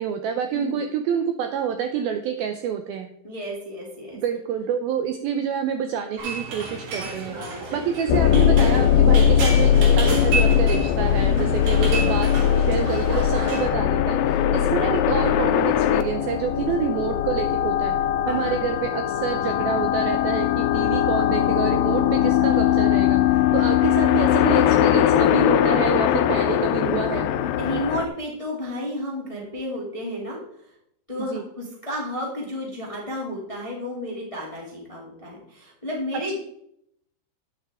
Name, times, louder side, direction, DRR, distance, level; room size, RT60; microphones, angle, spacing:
voice 1, 0.0-3.1 4.1-7.4 7.7-12.3 12.6-18.0 18.3-27.3 31.3-31.4, right 8 dB, 90° right, 7 dB, 2.1 m, -27 dB
voice 2, 0.5-0.8 3.2-4.2 7.0-7.9 11.2-11.8 12.7-13.0 18.2-18.6 27.6-30.4 31.1-36.4, equal, 15° left, -2 dB, 1.3 m, -32 dB
sound 1, 6.2-13.7, right 3 dB, 65° right, 4.9 m, -32 dB
sound 2, 8.1-28.1, left 10 dB, 80° left, 2.7 m, -20 dB
11.0 x 8.9 x 3.6 m, 0.73 s
omnidirectional pair, 5.2 m